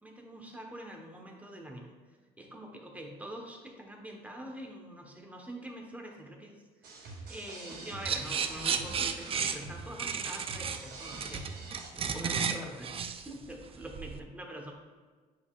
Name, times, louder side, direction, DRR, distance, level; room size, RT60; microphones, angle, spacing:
voice 1, 0.0-1.9 2.4-6.5 6.8-6.9 7.3-11.4 11.7-14.7, right 1 dB, 10° right, 1 dB, 1.2 m, -45 dB
sound 1, 6.8-11.9, right 2 dB, 75° right, 2.0 m, -45 dB
sound 2, 8.0-14.2, right 6 dB, 35° right, 0.4 m, -33 dB
9.4 x 5.2 x 2.5 m, 1.5 s
cardioid pair, 110°, 17 cm